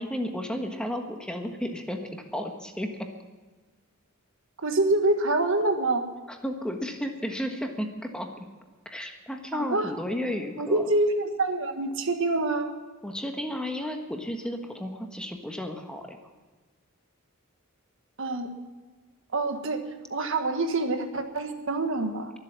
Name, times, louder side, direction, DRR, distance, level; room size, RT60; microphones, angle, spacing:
voice 1, 0.0-3.1 6.3-8.4 8.8-10.9 13.0-16.2, equal, 5° left, 3 dB, 1.4 m, -33 dB
voice 2, 4.6-6.0 9.5-9.9 10.6-12.7 18.2-18.5 19.3-19.8 20.1-22.3, right 2 dB, 60° right, 6 dB, 1.5 m, -26 dB
23.0 x 8.0 x 7.4 m, 1.4 s
head